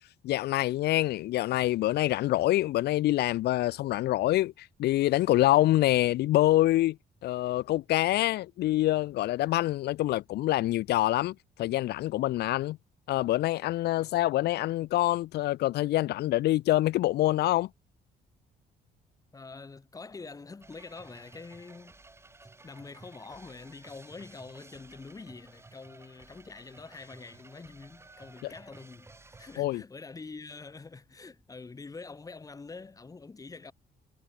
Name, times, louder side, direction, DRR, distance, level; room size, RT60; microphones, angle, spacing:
voice 1, 0.2-7.0 7.2-12.8 13.1-17.7 28.4-28.5 29.6-29.8, left 15 dB, 85° left, 0.9 m, -26 dB
voice 2, 19.3-22.0 22.6-29.1 29.4-33.7, left 4 dB, 20° left, 3.1 m, -45 dB
sound 1, 20.6-29.6, right 3 dB, 15° right, 4.0 m, -54 dB
cardioid pair, 135°, 17 cm